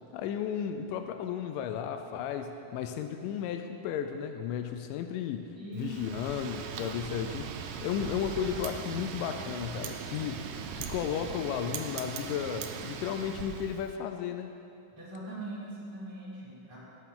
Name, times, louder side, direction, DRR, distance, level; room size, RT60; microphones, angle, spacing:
voice 1, 0.1-10.5 10.8-14.5, left 8 dB, 90° left, 7 dB, 2.2 m, -34 dB
voice 2, 5.6-6.1 15.0-16.8, right 1 dB, 10° right, -8 dB, 2.0 m, -41 dB
Wind, 5.8-13.9, right 7 dB, 75° right, 1.8 m, -39 dB
17.0 x 6.9 x 3.8 m, 2.6 s
omnidirectional pair, 3.8 m